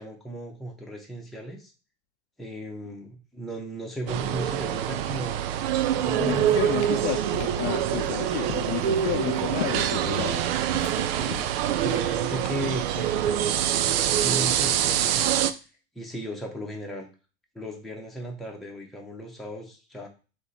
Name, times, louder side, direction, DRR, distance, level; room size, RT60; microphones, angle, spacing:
voice 1, 0.0-1.7 2.4-5.4 6.0-6.9 11.1-15.3 15.9-17.1 17.5-20.1, right 1 dB, ahead, 1.0 m, -36 dB
sound 1, 4.1-15.5, right 10 dB, 60° right, 0.5 m, -25 dB
voice 2, 6.1-10.4 10.9-11.1, left 13 dB, 45° left, 0.6 m, -32 dB
sound 2, 6.3-12.8, left 9 dB, 90° left, 0.6 m, -39 dB
3.7 x 2.9 x 4.1 m
hypercardioid pair, 90°, 34 cm